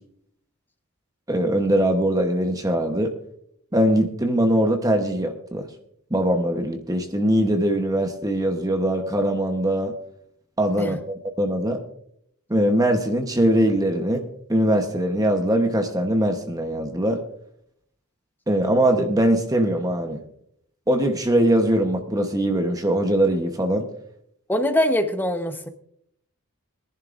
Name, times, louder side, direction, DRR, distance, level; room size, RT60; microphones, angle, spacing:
voice 1, 1.3-3.1 3.7-5.7 6.1-9.9 10.6-11.8 12.5-14.2 14.5-17.2 18.5-20.2 20.9-23.9, right 1 dB, 15° right, 5 dB, 1.0 m, -21 dB
voice 2, 24.5-25.7, left 1 dB, 10° left, 6 dB, 1.0 m, -23 dB
22.5 x 11.0 x 2.5 m, 0.69 s
head